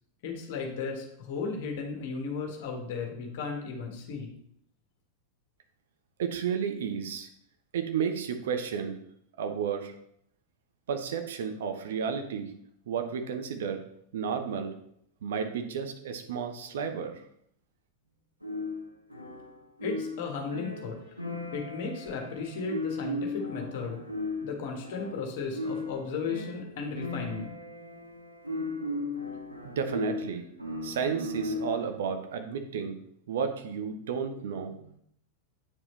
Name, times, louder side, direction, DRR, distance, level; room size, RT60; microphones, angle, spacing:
voice 1, 0.2-4.3 19.8-21.0 21.5-24.0 24.4-27.5, left 4 dB, 50° left, 2 dB, 1.5 m, -35 dB
voice 2, 6.2-7.3 7.7-9.0 9.4-9.9 10.9-12.5 12.9-13.8 14.1-14.7 15.2-17.2 29.6-30.5 30.8-33.0 33.3-35.0, right 7 dB, 60° right, 6 dB, 0.8 m, -32 dB
sound 1, 18.4-32.0, left 2 dB, 90° left, 0.8 m, -36 dB
8.6 x 4.7 x 3.3 m, 0.69 s
figure-of-eight pair, 90°, 0 cm